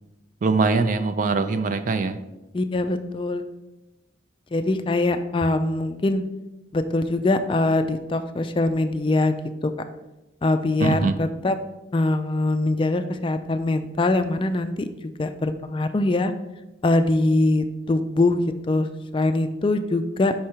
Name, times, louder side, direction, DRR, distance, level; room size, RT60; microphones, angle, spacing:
voice 1, 0.4-2.2 10.8-11.2, right 4 dB, 45° right, 10 dB, 0.4 m, -22 dB
voice 2, 2.5-3.4 4.5-6.2 6.7-9.4 9.6-9.7 10.4-11.6 11.9-16.3 16.8-18.9 19.1-20.3, left 2 dB, 25° left, 9 dB, 0.3 m, -23 dB
5.6 x 4.9 x 4.4 m, 1.0 s
head